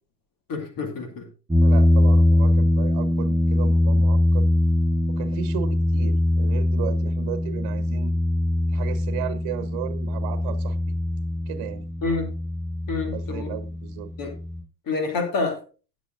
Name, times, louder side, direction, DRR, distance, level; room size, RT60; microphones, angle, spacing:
voice 1, 0.5-1.3 12.0-12.3 12.9-13.5 14.2-14.4 14.9-15.6, left 4 dB, 45° left, 6 dB, 2.6 m, -27 dB
sound 1, 1.5-14.6, left 1 dB, 5° right, 5.3 m, -22 dB
voice 2, 1.6-4.5 5.1-8.1 8.7-11.0 11.5-11.9 13.0-14.1, right 12 dB, 50° right, 12 dB, 1.3 m, -35 dB
19.0 x 7.2 x 2.5 m, 0.35 s
figure-of-eight pair, 65°, 47 cm